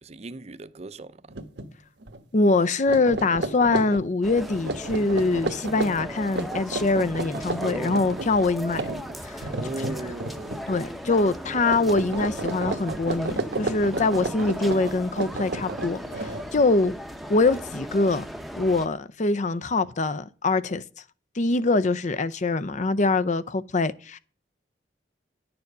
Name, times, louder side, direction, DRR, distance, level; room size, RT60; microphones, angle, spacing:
voice 1, 0.0-1.4 9.5-10.8, right 2 dB, 40° right, 0.6 m, -37 dB
sound 1, 1.3-1.7 2.0-2.2 2.7-10.8 11.1-11.4 11.7-16.8, right 2 dB, 75° right, 1.2 m, -32 dB
voice 2, 2.3-8.9 9.2-9.4 10.0-10.2 10.7-16.9 17.3-18.2 18.6-20.8 21.4-24.2, left 3 dB, 45° left, 0.6 m, -24 dB
sound 2, 4.2-18.9, equal, ahead, 0.8 m, -37 dB
10.5 x 7.0 x 6.6 m
head